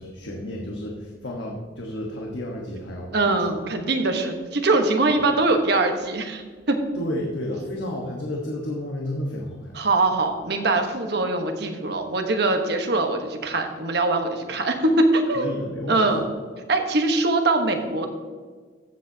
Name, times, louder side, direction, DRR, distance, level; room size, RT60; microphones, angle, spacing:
voice 1, 0.0-3.4 5.1-5.2 6.9-9.7 15.3-16.1, left 1 dB, 90° left, -1 dB, 1.3 m, -31 dB
voice 2, 3.1-6.8 9.7-15.5 15.9-16.2 16.7-18.1, right 2 dB, 65° right, 5 dB, 1.2 m, -22 dB
14.5 x 7.5 x 2.8 m, 1.5 s
head